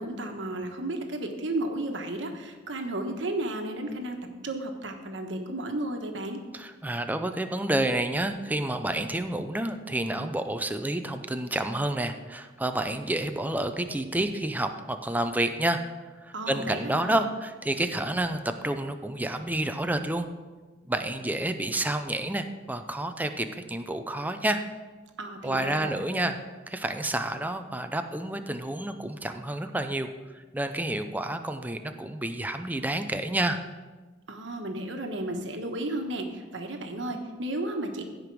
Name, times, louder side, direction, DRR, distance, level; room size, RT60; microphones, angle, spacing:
voice 1, 0.0-4.2 4.4-6.4 16.3-17.2 25.2-26.3 34.3-38.0, right 1 dB, 75° right, 4 dB, 1.3 m, -33 dB
voice 2, 6.5-15.8 16.2-20.3 20.8-24.6 25.4-26.4 26.7-30.1 30.3-33.6, right 1 dB, 10° right, 7 dB, 0.6 m, -29 dB
15.5 x 5.2 x 4.7 m, 1.3 s
head